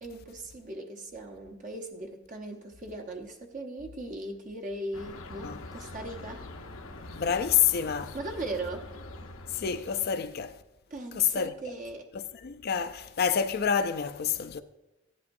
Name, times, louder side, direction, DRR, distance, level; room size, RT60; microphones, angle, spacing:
voice 1, 0.0-6.5 8.1-8.9 10.9-12.1, right 2 dB, 40° right, 0.8 m, -38 dB
sound 1, 4.9-10.1, left 2 dB, 80° left, 0.9 m, -44 dB
voice 2, 7.1-8.1 9.5-10.5 11.1-11.5 12.4-14.6, left 8 dB, 50° left, 0.4 m, -27 dB
15.5 x 11.0 x 2.6 m
head